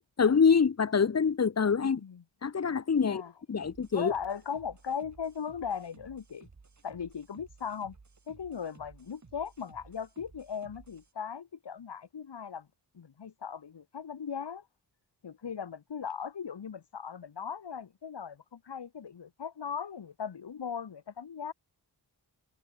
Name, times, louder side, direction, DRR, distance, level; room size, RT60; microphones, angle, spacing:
voice 1, 0.2-2.0 2.4-3.2 3.5-4.1, left 6 dB, 40° left, 0.9 m, -25 dB
voice 2, 1.8-2.2 3.0-3.3 3.9-6.5 6.8-7.9 8.3-12.7 12.9-14.6 15.2-21.5, left 7 dB, 75° left, 3.0 m, -38 dB
sound 1, 3.6-11.1, right 4 dB, 40° right, 5.5 m, -57 dB
wide cardioid pair, 135°, 41 cm